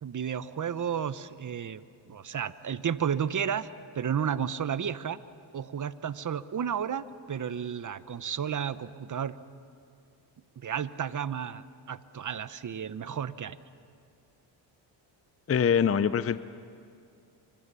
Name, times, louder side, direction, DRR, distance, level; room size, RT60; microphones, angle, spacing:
voice 1, 0.0-1.8 2.1-5.2 5.5-9.3 10.6-13.6, right 8 dB, 40° right, 14 dB, 1.0 m, -32 dB
voice 2, 15.5-16.4, left 7 dB, 30° left, 14 dB, 0.7 m, -24 dB
25.5 x 25.0 x 7.0 m, 2.3 s
cardioid pair, 70°, 47 cm